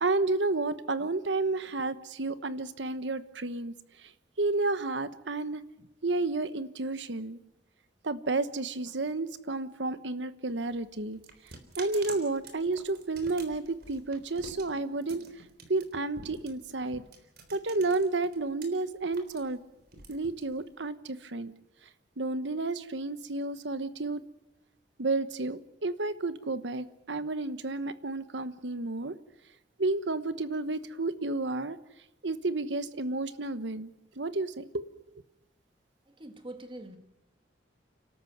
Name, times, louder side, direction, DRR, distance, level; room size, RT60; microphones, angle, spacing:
voice 1, 0.0-3.7 4.4-5.6 6.0-7.4 8.0-11.2 11.8-15.2 15.7-17.0 17.5-19.6 20.1-21.5 22.2-24.2 25.0-29.1 29.8-31.8 32.2-33.9 34.2-34.8, right 3 dB, 75° right, 13 dB, 1.2 m, -31 dB
sound 1, 10.5-18.7 19.0-20.9, right 4 dB, 60° right, 3.7 m, -47 dB
voice 2, 36.1-37.0, right 1 dB, 30° right, 7 dB, 1.9 m, -44 dB
30.0 x 13.0 x 8.0 m, 0.90 s
head